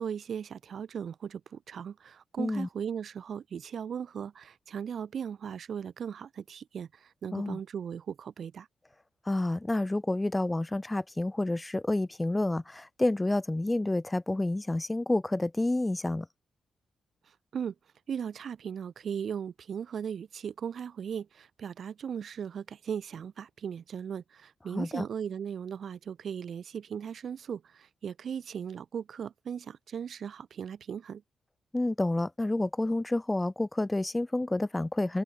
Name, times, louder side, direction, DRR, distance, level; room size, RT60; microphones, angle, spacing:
voice 1, 0.0-8.7 17.3-17.7 18.1-31.2, right 7 dB, 65° right, 1.5 m, -37 dB
voice 2, 2.4-2.7 7.3-7.6 9.3-16.3 24.7-25.0 31.7-35.2, left 2 dB, 20° left, 1.9 m, -29 dB
open air
supercardioid pair, 55°, 0 cm